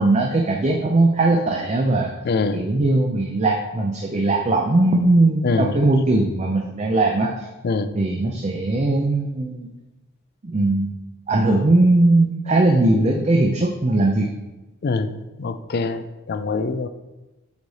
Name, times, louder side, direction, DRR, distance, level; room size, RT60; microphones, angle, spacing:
voice 1, 0.0-2.1 2.5-7.5 8.0-9.7 10.4-10.9 11.3-14.3, right 2 dB, 30° right, 1 dB, 0.5 m, -19 dB
voice 2, 2.2-2.6 5.4-5.7 7.6-7.9 14.8-16.9, left 3 dB, 45° left, 11 dB, 0.4 m, -24 dB
8.2 x 3.3 x 4.0 m, 1.1 s
head